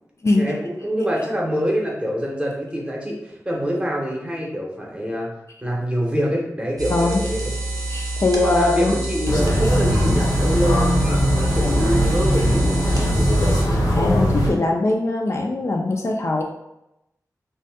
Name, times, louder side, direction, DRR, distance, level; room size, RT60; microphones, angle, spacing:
voice 1, 0.3-5.3 5.6-7.5 8.3-13.3, equal, 15° right, -2 dB, 0.8 m, -25 dB
sound 1, 6.8-13.6, right 2 dB, 75° right, 0.6 m, -28 dB
voice 2, 6.9-7.2 7.9-8.9 13.9-16.4, left 2 dB, 50° left, 1 dB, 0.4 m, -21 dB
sound 2, 9.3-14.5, equal, 85° left, 0.7 m, -19 dB
2.6 x 2.3 x 3.4 m, 0.86 s
wide cardioid pair, 85°, 6 cm